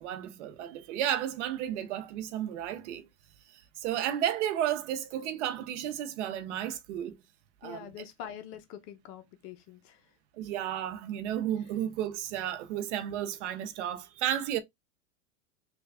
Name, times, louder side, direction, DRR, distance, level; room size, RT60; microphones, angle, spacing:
voice 1, 0.0-3.0 3.5-7.2 7.6-7.9 10.4-14.6, right 11 dB, 65° right, 0.7 m, -33 dB
voice 2, 7.6-10.1, left 9 dB, 45° left, 0.6 m, -45 dB
3.3 x 2.3 x 3.3 m
hypercardioid pair, 120°, 38 cm